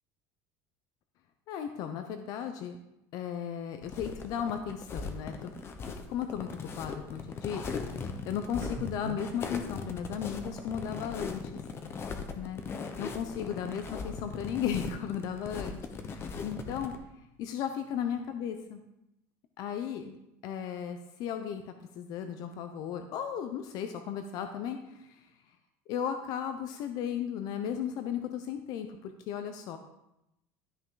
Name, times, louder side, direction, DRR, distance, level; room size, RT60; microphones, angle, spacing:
voice 1, 1.5-2.8 3.1-5.5 5.9-7.7 8.3-11.5 12.4-12.6 13.0-16.9 17.4-18.8 19.6-20.2 20.4-25.3 25.9-29.8, left 8 dB, 60° left, 7 dB, 0.8 m, -35 dB
sound 1, 3.8-17.0, left 4 dB, 35° left, 1.1 m, -39 dB
sound 2, 8.6-12.1 12.5-14.3 14.6-16.4 16.8-18.6, right 2 dB, 85° right, 2.4 m, -52 dB
13.0 x 5.8 x 4.0 m, 0.87 s
supercardioid pair, 120°, 7 cm